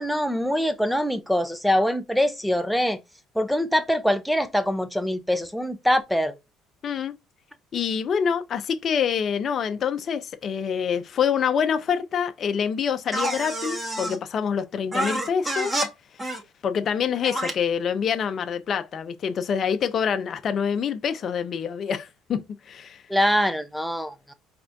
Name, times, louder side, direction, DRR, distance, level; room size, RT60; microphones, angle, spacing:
voice 1, 0.0-3.0 3.3-6.4 23.1-24.3, equal, ahead, 0.6 m, -24 dB
voice 2, 6.8-7.1 7.7-15.7 16.6-23.0, left 7 dB, 45° left, 0.7 m, -26 dB
sound 1, 13.1-14.2 14.9-15.9 16.2-16.4 17.2-17.5, right 1 dB, 20° right, 1.4 m, -28 dB
4.9 x 3.3 x 2.6 m
cardioid pair, 110°, 0 cm